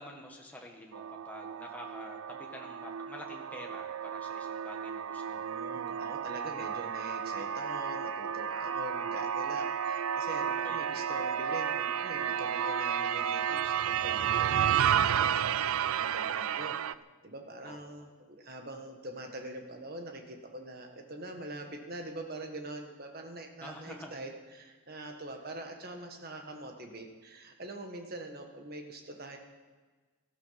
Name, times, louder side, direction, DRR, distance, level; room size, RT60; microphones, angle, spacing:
voice 1, 0.0-5.5 10.6-10.8 11.2-11.4 16.2-16.7 17.6-17.8 23.6-24.2, left 1 dB, 5° left, 0 dB, 1.7 m, -48 dB
sound 1, 0.9-16.9, right 8 dB, 70° right, 0.4 m, -32 dB
voice 2, 5.3-16.8 17.2-29.4, right 1 dB, 45° right, 4 dB, 1.7 m, -44 dB
18.0 x 13.0 x 5.9 m, 1.4 s
head